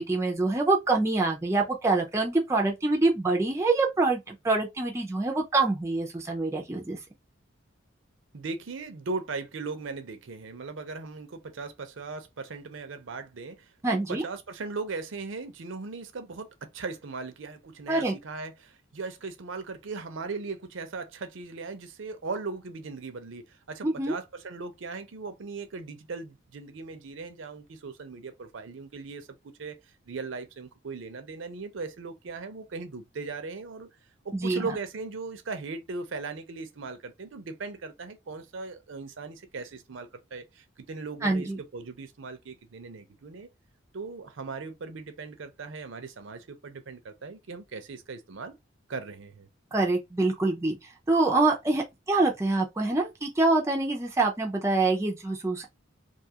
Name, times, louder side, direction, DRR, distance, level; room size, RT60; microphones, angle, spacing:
voice 1, 0.0-7.0 13.8-14.2 17.9-18.1 23.8-24.2 34.3-34.7 41.2-41.6 49.7-50.8 51.1-55.7, right 3 dB, 15° right, 0.4 m, -25 dB
voice 2, 8.3-33.9 34.2-43.5 43.9-48.6 48.9-49.5, right 4 dB, 70° right, 0.5 m, -38 dB
2.6 x 2.3 x 2.8 m
head